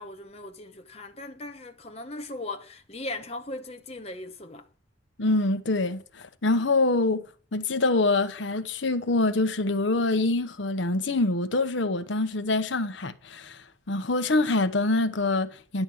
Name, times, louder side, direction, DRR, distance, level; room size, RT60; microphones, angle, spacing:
voice 1, 0.0-4.7, left 2 dB, 30° left, 1.0 m, -38 dB
voice 2, 5.2-7.2 7.5-13.6 13.9-15.8, left 2 dB, 70° left, 1.0 m, -25 dB
11.0 x 7.3 x 4.7 m
head